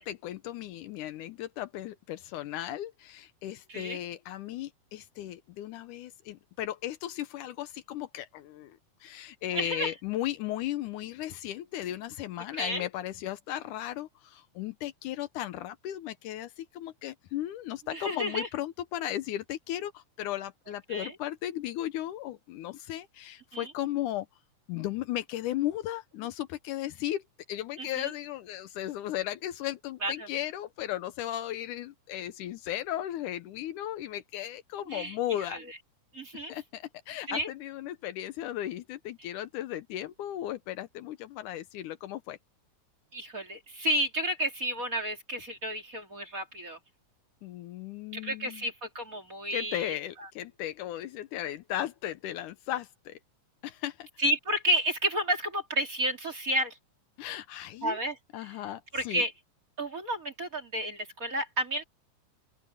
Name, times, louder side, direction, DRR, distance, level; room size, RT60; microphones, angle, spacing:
voice 1, 0.0-24.3 24.7-27.2 27.5-35.6 36.5-42.4 47.4-48.7 49.5-53.2 53.6-54.1 57.2-58.0 58.3-59.2, left 13 dB, 75° left, 2.2 m, -36 dB
voice 2, 9.5-9.9 12.5-12.9 17.9-18.5 20.9-21.1 23.5-23.7 27.8-28.1 30.0-30.1 34.9-35.1 35.5-35.8 36.1-36.5 37.3-37.5 43.1-46.8 48.1-50.0 54.2-56.8 57.8-58.1 58.9-59.3 59.8-61.8, right 1 dB, 25° right, 2.8 m, -31 dB
open air
omnidirectional pair, 3.8 m